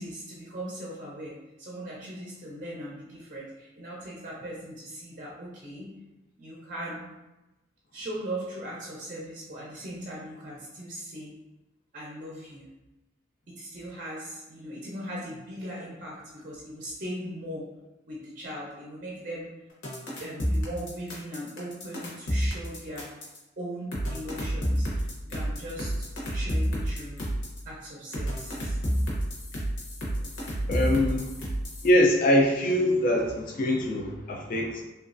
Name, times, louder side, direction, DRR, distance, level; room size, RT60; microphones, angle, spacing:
voice 1, 0.0-5.9 6.4-7.1 7.9-11.4 11.9-12.7 13.5-17.7 18.1-19.5 20.2-23.1 23.6-27.2 27.6-28.8, right 1 dB, 40° right, -4 dB, 0.5 m, -39 dB
sound 1, 19.8-23.4 23.9-27.6 28.1-31.9, equal, 70° left, 0.8 m, -29 dB
voice 2, 30.7-31.3 31.8-34.8, left 1 dB, 45° left, 0 dB, 0.3 m, -23 dB
3.0 x 2.3 x 2.5 m, 1.0 s
head